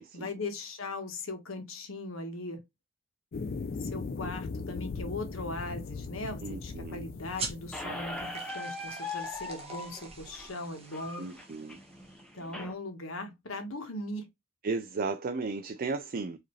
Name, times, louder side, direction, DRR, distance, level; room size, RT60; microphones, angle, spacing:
voice 1, 0.1-2.6 3.8-11.3 12.3-14.3, left 2 dB, 70° left, 1.2 m, -39 dB
sound 1, 3.3-8.3, left 4 dB, 45° left, 0.4 m, -39 dB
voice 2, 6.4-7.1 11.2-11.8 14.6-16.4, right 4 dB, 45° right, 0.4 m, -35 dB
sound 2, 7.3-12.4, right 4 dB, 30° right, 1.1 m, -44 dB
Squeak, 7.7-12.7, left 2 dB, 5° left, 0.8 m, -40 dB
4.9 x 2.8 x 3.1 m
head